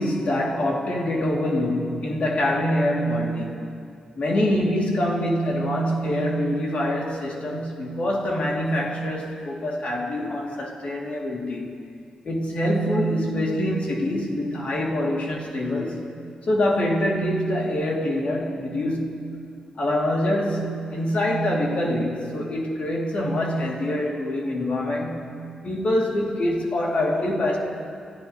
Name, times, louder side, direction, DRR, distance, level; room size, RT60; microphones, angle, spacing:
voice 1, 0.0-3.6 4.1-11.7 12.2-16.1 16.5-19.2 19.7-25.3 25.6-27.6, left 1 dB, 60° left, -3 dB, 3.2 m, -25 dB
30.0 x 13.5 x 3.3 m, 2.4 s
cardioid pair, 65°, 2 cm